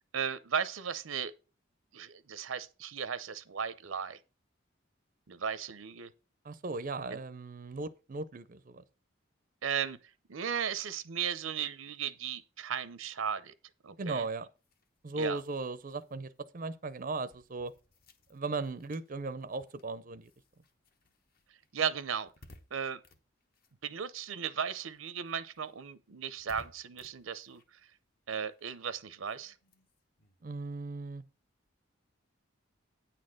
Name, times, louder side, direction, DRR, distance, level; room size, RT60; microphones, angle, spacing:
voice 1, 0.1-1.3 1.9-4.2 5.3-6.1 7.1-7.2 9.6-10.0 10.3-13.5 13.8-14.2 15.2-15.4 21.7-22.3 22.7-23.0 23.8-27.6 28.3-29.5, right 7 dB, 85° right, 0.6 m, -36 dB
voice 2, 6.4-8.8 14.0-14.5 15.0-17.7 18.3-20.3 30.4-31.2, right 3 dB, 40° right, 0.5 m, -37 dB
sound 1, 14.6-24.5 24.8-31.7, left 1 dB, 45° left, 1.0 m, -62 dB
9.1 x 4.2 x 6.3 m
head